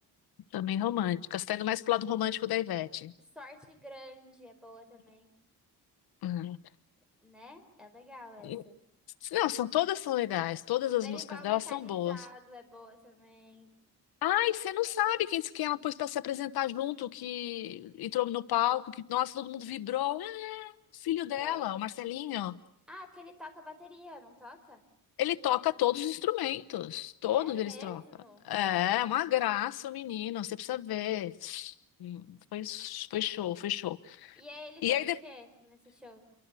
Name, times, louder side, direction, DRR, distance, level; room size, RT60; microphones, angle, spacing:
voice 1, 0.5-3.1 6.2-6.6 8.4-8.6 9.2-12.2 14.2-22.6 25.2-28.0 28.4-31.7 32.0-34.4 34.8-35.2, left 13 dB, 75° left, 1.2 m, -31 dB
voice 2, 3.3-5.3 7.2-8.8 11.0-13.7 21.4-21.7 22.9-24.8 27.3-28.4 34.4-36.2, left 2 dB, ahead, 4.8 m, -49 dB
29.5 x 24.0 x 8.4 m
cardioid pair, 155°, 37 cm